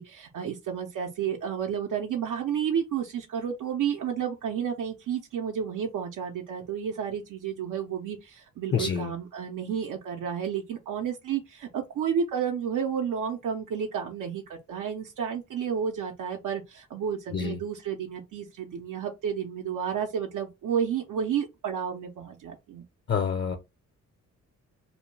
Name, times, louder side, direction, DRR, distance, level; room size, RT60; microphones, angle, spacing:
voice 1, 0.0-22.8, right 8 dB, 80° right, 0.6 m, -31 dB
voice 2, 8.7-9.1 17.3-17.6 23.1-23.6, left 6 dB, 35° left, 0.5 m, -27 dB
2.7 x 2.2 x 3.1 m
cardioid pair, 95°, 31 cm